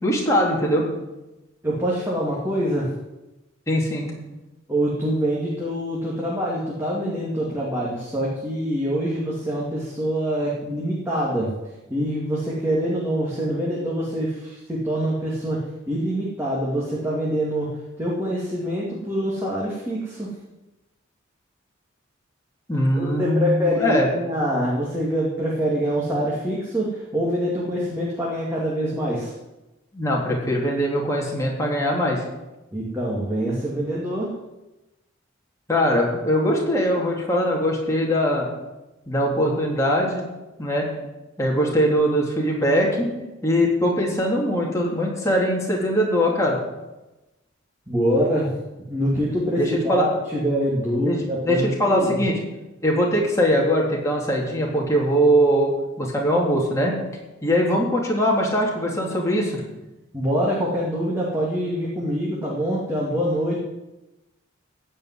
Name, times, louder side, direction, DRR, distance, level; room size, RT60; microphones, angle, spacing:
voice 1, 0.0-0.8 3.7-4.1 22.7-24.1 29.9-32.2 35.7-38.5 39.1-40.3 40.6-40.8 41.4-43.1 43.4-46.6 49.6-50.1 51.0-51.2 51.5-52.4 52.8-55.7 56.0-56.9 57.4-59.6, equal, 15° left, -3 dB, 3.4 m, -21 dB
voice 2, 1.6-2.9 4.7-11.5 11.9-17.7 18.0-20.3 23.0-29.3 32.7-34.3 47.9-48.5 48.9-52.2 60.1-63.6, equal, 10° right, -6 dB, 2.5 m, -25 dB
16.0 x 5.7 x 9.7 m, 1.0 s
head